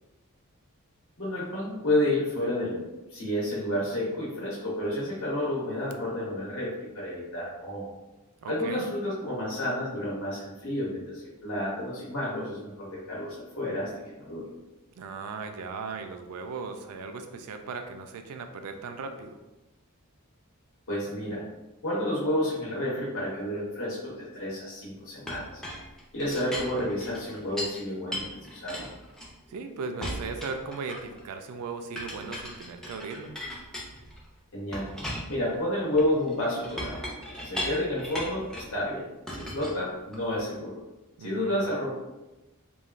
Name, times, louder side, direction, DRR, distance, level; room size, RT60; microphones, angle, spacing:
voice 1, 1.2-2.8 3.1-7.9 8.5-14.5 20.9-21.4 21.8-25.6 26.1-28.9 34.5-34.9 35.3-37.0 37.3-40.8 41.2-41.9, left 1 dB, 60° left, -6 dB, 0.8 m, -30 dB
voice 2, 8.4-8.8 15.0-19.4 29.5-33.3 41.2-41.7, right 4 dB, 85° right, 6 dB, 0.3 m, -37 dB
Chink clink, 25.3-27.8 28.1-29.6 30.0-31.2 32.0-34.3 34.7-38.8 39.3-40.4, equal, ahead, 0.3 m, -38 dB
3.1 x 2.2 x 2.4 m, 1.1 s
head